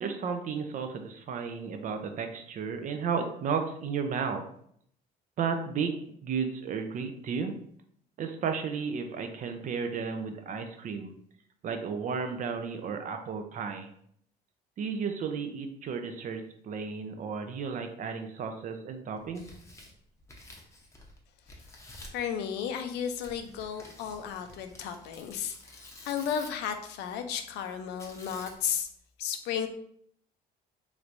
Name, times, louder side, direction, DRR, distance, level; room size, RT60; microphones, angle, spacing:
voice 1, 0.0-4.4 5.4-7.5 8.2-11.1 11.6-13.9 14.8-19.4, right 6 dB, 50° right, 6 dB, 0.5 m, -33 dB
Tearing, 19.2-21.2 21.5-22.2 23.2-26.7 28.0-28.8, left 1 dB, 15° left, 0.7 m, -50 dB
voice 2, 22.1-28.9 29.2-29.7, left 8 dB, 85° left, 7 dB, 0.5 m, -34 dB
3.2 x 3.1 x 2.5 m, 0.67 s
cardioid pair, 110°, 17 cm